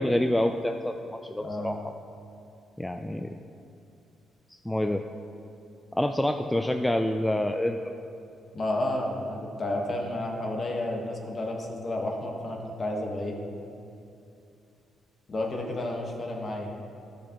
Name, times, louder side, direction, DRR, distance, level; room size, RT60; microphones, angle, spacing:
voice 1, 0.0-1.9 2.8-3.4 4.7-5.0 5.9-7.8, left 1 dB, 5° left, 5 dB, 0.3 m, -27 dB
voice 2, 1.4-1.7 8.5-13.3 15.3-16.7, left 1 dB, 40° left, 0 dB, 1.4 m, -31 dB
12.5 x 6.6 x 3.0 m, 2.6 s
cardioid pair, 90°, 0 cm